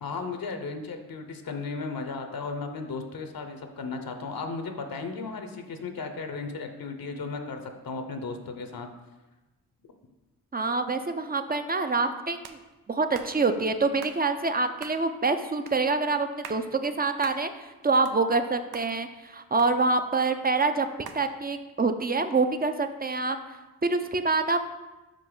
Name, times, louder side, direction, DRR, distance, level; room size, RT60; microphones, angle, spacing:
voice 1, 0.0-8.9, left 4 dB, 65° left, 6 dB, 0.8 m, -35 dB
voice 2, 10.5-12.6 12.9-23.4 23.8-24.6, right 3 dB, 25° right, 8 dB, 0.5 m, -26 dB
sound 1, 12.4-12.6 13.1-13.3 14.0-14.2 14.8-15.0 15.7-15.8 16.3-16.6 17.2-17.4 17.8-18.5 18.7-18.9 19.6-20.2 21.1-21.2, right 7 dB, 85° right, 0.5 m, -42 dB
5.3 x 4.9 x 3.9 m, 1.1 s
cardioid pair, 45°, 38 cm